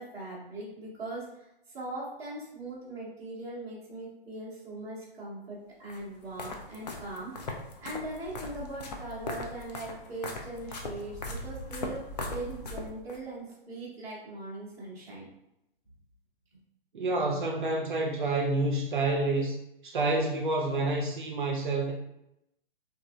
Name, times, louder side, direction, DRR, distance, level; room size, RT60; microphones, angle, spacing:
voice 1, 0.0-7.6 7.8-15.3, right 2 dB, 10° right, -9 dB, 0.7 m, -40 dB
sound 1, 5.9-13.2, left 2 dB, 45° left, 0.5 m, -39 dB
voice 2, 16.9-21.9, right 2 dB, 55° right, 1 dB, 0.5 m, -28 dB
3.1 x 2.7 x 2.4 m, 0.86 s
figure-of-eight pair, 125°, 30 cm